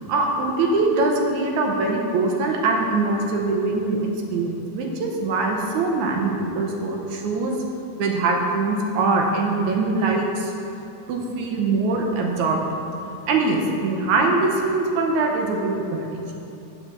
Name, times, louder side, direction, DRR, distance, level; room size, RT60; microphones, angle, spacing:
voice 1, 0.0-7.5 8.0-10.5 11.1-12.6 13.3-16.4, right 3 dB, 75° right, 1 dB, 2.2 m, -23 dB
9.0 x 4.9 x 7.0 m, 2.7 s
omnidirectional pair, 3.6 m